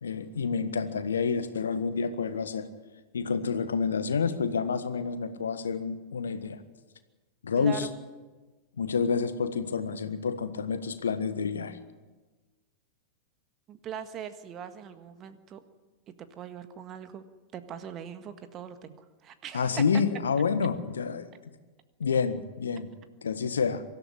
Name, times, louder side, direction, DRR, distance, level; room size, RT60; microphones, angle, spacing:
voice 1, 0.0-2.7 3.1-6.6 7.4-7.9 8.8-11.8 19.5-21.3 22.0-22.9 23.2-23.8, left 5 dB, 70° left, 11 dB, 1.5 m, -28 dB
voice 2, 7.6-7.9 13.7-15.6 16.2-17.2 17.5-19.8, right 9 dB, 30° right, 10 dB, 1.7 m, -41 dB
24.0 x 13.5 x 9.9 m, 1.3 s
figure-of-eight pair, 90°, 0 cm